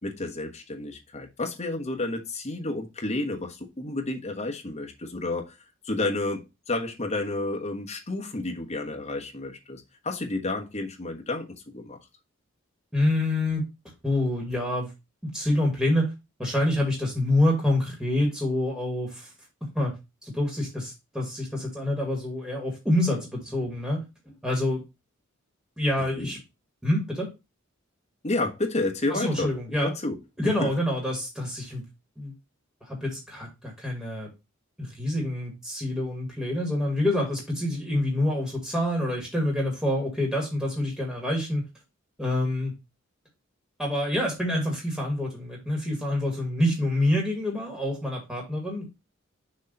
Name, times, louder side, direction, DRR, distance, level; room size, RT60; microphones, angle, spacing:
voice 1, 0.0-5.5 5.8-12.0 26.2-26.3 28.2-29.5 29.8-30.2 30.4-30.7, left 2 dB, 35° left, 1.2 m, -31 dB
voice 2, 12.9-13.6 14.0-14.9 15.2-16.1 16.4-19.3 19.7-19.9 20.2-24.0 24.4-24.8 25.8-26.4 26.8-27.3 29.1-29.9 30.4-31.8 32.2-32.3 32.8-34.3 34.8-41.6 42.2-42.7 43.8-48.8, left 1 dB, ahead, 2.0 m, -27 dB
6.4 x 3.1 x 5.4 m
head